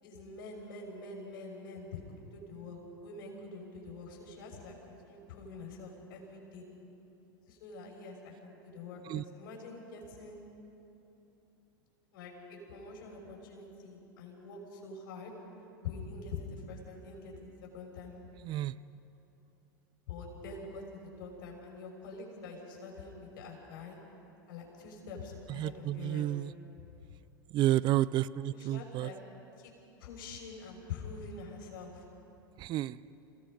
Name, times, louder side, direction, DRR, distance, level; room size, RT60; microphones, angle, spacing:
voice 1, 0.0-2.0 2.3-6.6 7.5-10.4 12.1-15.3 15.8-18.2 20.1-24.0 24.5-26.3 26.8-27.1 28.5-29.2 29.6-29.7 30.0-32.0, left 4 dB, 65° left, 0 dB, 6.2 m, -45 dB
voice 2, 25.6-26.5 27.5-29.1 32.6-33.0, right 14 dB, 40° right, 18 dB, 0.5 m, -30 dB
29.5 x 18.0 x 5.1 m, 2.9 s
hypercardioid pair, 95°, 12 cm